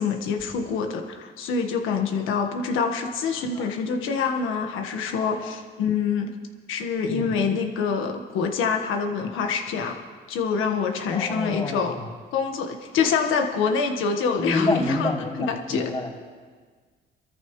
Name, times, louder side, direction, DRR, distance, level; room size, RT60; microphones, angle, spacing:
voice 1, 0.0-6.3 6.7-10.0 10.3-11.9 12.3-15.1 15.5-15.9, left 5 dB, 90° left, 4 dB, 1.5 m, -26 dB
voice 2, 11.1-12.1 14.4-16.2, left 2 dB, 30° left, -4 dB, 4.6 m, -28 dB
24.5 x 14.0 x 3.2 m, 1.5 s
cardioid pair, 90°, 20 cm